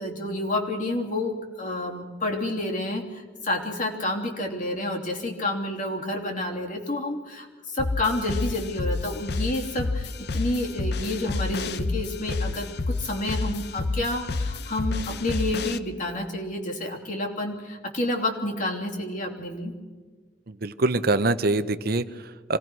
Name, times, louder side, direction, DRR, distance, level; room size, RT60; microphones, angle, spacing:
voice 1, 0.0-19.7, left 1 dB, 50° left, 1 dB, 3.2 m, -29 dB
sound 1, 7.8-15.8, left 3 dB, 65° left, 0.8 m, -30 dB
voice 2, 20.5-22.6, right 2 dB, 60° right, 12 dB, 0.8 m, -25 dB
25.5 x 18.0 x 6.2 m, 1.4 s
head